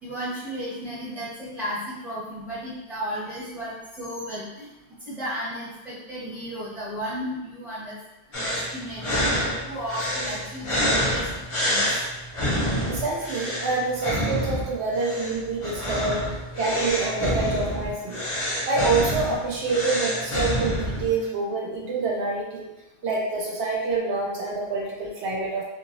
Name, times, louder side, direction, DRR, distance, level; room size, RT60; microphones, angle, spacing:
voice 1, 0.0-4.7 5.0-7.9 8.3-9.2 9.6-11.8, equal, ahead, -12 dB, 1.4 m, -34 dB
sound 1, 8.3-21.2, equal, 35° left, 0.6 m, -27 dB
voice 2, 12.8-16.2 16.5-18.2 18.7-22.7 23.0-25.6, right 3 dB, 85° right, -3 dB, 1.0 m, -27 dB
2.8 x 2.8 x 2.6 m, 0.99 s
omnidirectional pair, 1.1 m